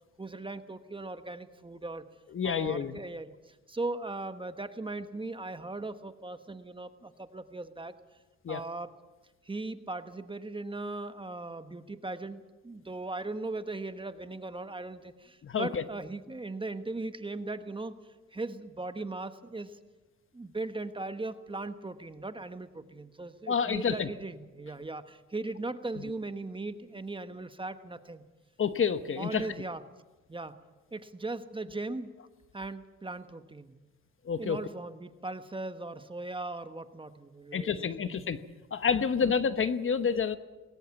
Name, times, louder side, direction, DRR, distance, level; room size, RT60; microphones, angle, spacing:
voice 1, 0.2-2.0 2.4-7.9 8.5-8.9 9.4-18.0 18.3-19.8 20.3-28.2 29.2-29.8 30.3-30.5 30.9-32.1 32.5-33.7 34.4-38.3 39.2-39.3, right 2 dB, 15° right, 10 dB, 1.2 m, -38 dB
voice 2, 2.3-2.9 8.4-8.6 15.4-15.8 23.5-24.1 26.0-26.1 28.6-29.4 34.2-34.6 37.5-38.4 38.7-40.4, left 6 dB, 45° left, 11 dB, 1.1 m, -28 dB
20.0 x 18.5 x 7.2 m, 1.2 s
cardioid pair, 90°, 30 cm